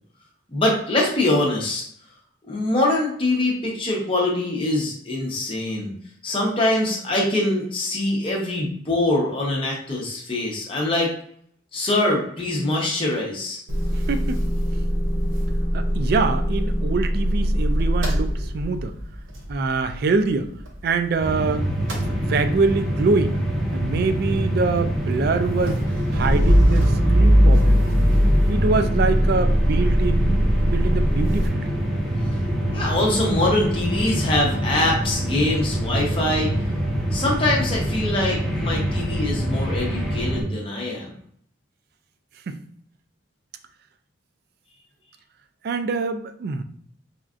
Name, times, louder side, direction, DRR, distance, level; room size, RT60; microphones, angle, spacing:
voice 1, 0.5-1.8 2.5-5.9 6.2-11.1 11.7-13.6 32.7-36.5 37.1-41.1, left 2 dB, 25° left, -2 dB, 0.8 m, -23 dB
Motor vehicle (road) / Engine starting / Idling, 13.7-21.4 21.7-31.5, equal, 80° right, 0.7 m, -22 dB
voice 2, 14.1-14.4 15.7-18.9 19.5-20.5 20.8-21.7 22.0-23.4 23.7-25.8 26.1-27.8 28.5-31.7 42.5-42.6 45.6-46.6, right 4 dB, 50° right, 9 dB, 0.3 m, -24 dB
sound 1, 21.2-40.4, right 1 dB, ahead, 0.9 m, -25 dB
4.2 x 2.4 x 2.4 m, 0.63 s
head